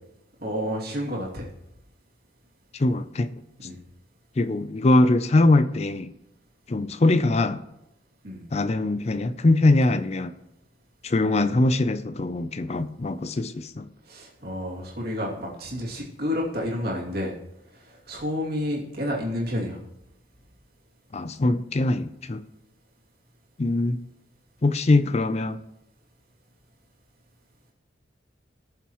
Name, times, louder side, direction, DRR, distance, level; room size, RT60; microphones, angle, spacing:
voice 1, 0.4-1.5 3.6-3.8 8.2-8.4 11.2-11.6 14.1-17.3 17.7-19.8, left 1 dB, 55° right, -3 dB, 2.5 m, -30 dB
voice 2, 2.8-3.3 4.4-6.1 6.7-7.6 8.5-10.3 11.0-13.9 21.1-22.4 23.6-24.0 24.6-25.6, left 2 dB, 35° left, 13 dB, 0.5 m, -22 dB
18.0 x 7.0 x 3.1 m, 0.85 s
head